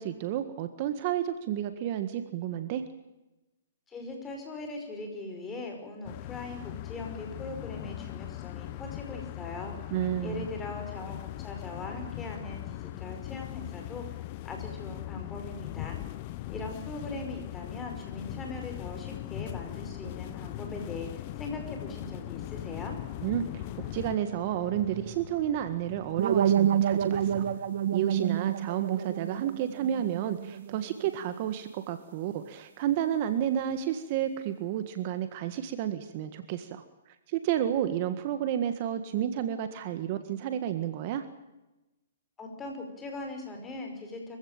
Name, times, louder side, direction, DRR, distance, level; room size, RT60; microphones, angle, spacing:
voice 1, 0.0-2.8 9.9-10.5 23.2-27.5 27.9-36.8 37.3-41.2, right 10 dB, 40° right, 10 dB, 1.7 m, -31 dB
voice 2, 3.9-9.8 10.2-14.2 14.4-16.0 16.5-23.0 42.4-44.4, left 2 dB, 15° left, 3 dB, 5.4 m, -40 dB
sound 1, 6.0-24.2, left 16 dB, 40° left, 0.8 m, -39 dB
sound 2, 19.1-27.5, left 1 dB, 5° right, 3.3 m, -50 dB
sound 3, 26.2-31.1, right 9 dB, 60° right, 1.6 m, -28 dB
24.5 x 16.0 x 9.0 m, 1.0 s
hypercardioid pair, 150°, 0 cm